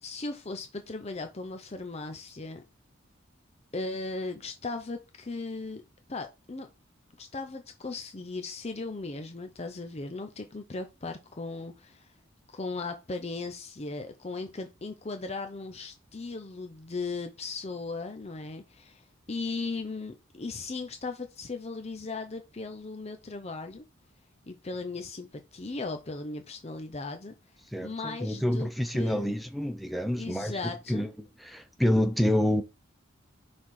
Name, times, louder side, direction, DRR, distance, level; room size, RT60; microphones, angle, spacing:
voice 1, 0.0-2.6 3.7-5.8 6.1-6.7 7.2-12.1 12.5-23.9 24.5-27.3 27.8-29.4 30.2-31.1, left 3 dB, 30° left, 0.6 m, -37 dB
voice 2, 27.7-30.6 30.9-31.1 31.4-32.6, left 1 dB, ahead, 0.8 m, -27 dB
5.8 x 4.3 x 4.7 m
head